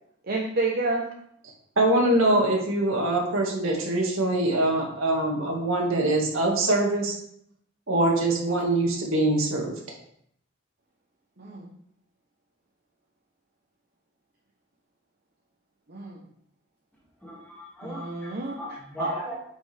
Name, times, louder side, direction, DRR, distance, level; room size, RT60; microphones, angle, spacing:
voice 1, 0.3-1.1 11.4-11.7 15.9-16.2 17.8-18.6 19.0-19.1, right 3 dB, 50° right, -2 dB, 0.9 m, -29 dB
voice 2, 1.8-7.1 7.9-9.7, right 1 dB, 85° right, -1 dB, 1.9 m, -23 dB
voice 3, 17.2-19.3, left 1 dB, 5° left, -5 dB, 2.2 m, -38 dB
9.2 x 5.1 x 3.4 m, 0.70 s
head